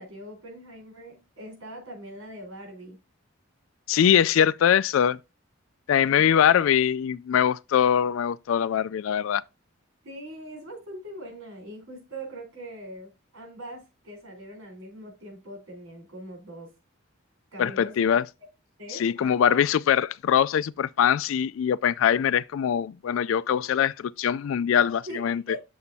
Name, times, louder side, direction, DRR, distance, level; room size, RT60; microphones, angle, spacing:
voice 1, 0.0-3.0 6.0-6.5 10.0-16.7 17.5-17.9 18.8-19.6 25.1-25.6, right 1 dB, 75° right, 3.9 m, -42 dB
voice 2, 3.9-5.2 5.9-9.4 17.6-18.3 18.9-25.4, left 8 dB, 70° left, 0.3 m, -22 dB
8.4 x 7.0 x 2.7 m
head